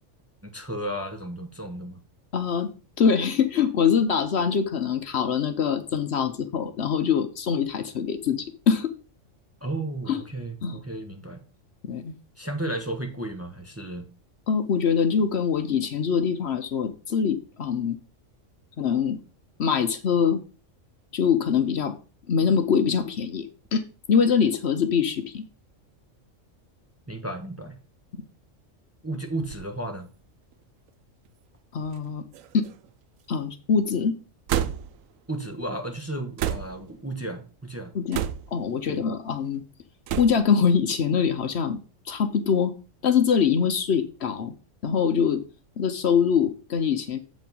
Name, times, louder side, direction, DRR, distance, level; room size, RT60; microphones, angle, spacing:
voice 1, 0.4-2.0 9.6-11.4 12.4-14.1 27.1-27.8 29.0-30.1 35.3-37.9 38.9-39.0, right 1 dB, 15° right, 3 dB, 1.0 m, -33 dB
voice 2, 2.3-2.7 3.0-8.9 10.1-10.2 10.6-10.8 11.8-12.1 14.5-18.0 18.8-19.2 19.6-20.4 21.1-21.9 22.3-23.5 23.7-23.8 24.1-25.4 31.7-32.2 32.5-32.7 33.3-34.2 37.9-38.2 38.5-39.6 40.2-41.8 42.1-42.7 43.0-44.5 44.8-45.4 45.8-47.2, left 6 dB, 60° left, 9 dB, 1.0 m, -23 dB
sound 1, 29.3-29.7 30.5-30.6 31.8-32.1 32.3-32.9 34.5-35.0 36.4-36.9 38.1-38.6 40.1-40.5, right 10 dB, 85° right, 1.0 m, -30 dB
7.8 x 5.2 x 5.2 m, 0.35 s
omnidirectional pair, 1.3 m